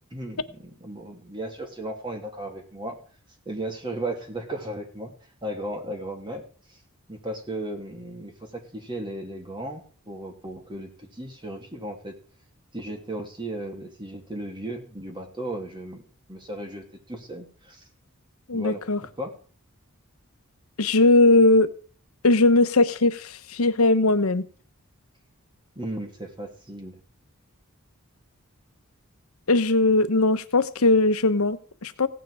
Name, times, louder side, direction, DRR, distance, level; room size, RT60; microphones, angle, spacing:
voice 1, 0.1-3.0 3.4-5.1 5.4-6.4 6.7-6.8 7.1-12.1 12.7-16.0 16.3-17.8 18.5-19.3 25.7-27.0, right 1 dB, 20° right, 2.7 m, -35 dB
voice 2, 18.5-19.0 20.8-21.7 22.2-24.4 29.5-32.1, left 2 dB, 75° left, 1.0 m, -19 dB
16.5 x 9.4 x 4.8 m
head